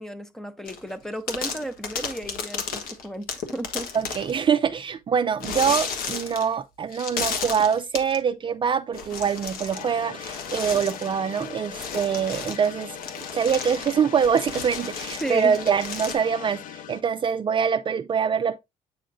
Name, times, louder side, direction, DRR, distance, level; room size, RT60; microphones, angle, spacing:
voice 1, 0.0-3.9 15.2-15.6, right 1 dB, 5° left, 0.7 m, -33 dB
sound 1, 0.7-0.9 1.3-4.4 5.4-6.6 6.9-8.2 8.9-9.9 10.2-16.1, left 5 dB, 90° left, 1.3 m, -33 dB
voice 2, 3.9-13.0 13.3-18.6, right 7 dB, 35° right, 0.4 m, -24 dB
sound 2, 9.7-17.0, left 9 dB, 65° left, 0.5 m, -40 dB
8.5 x 5.0 x 2.6 m
cardioid pair, 125°, 15 cm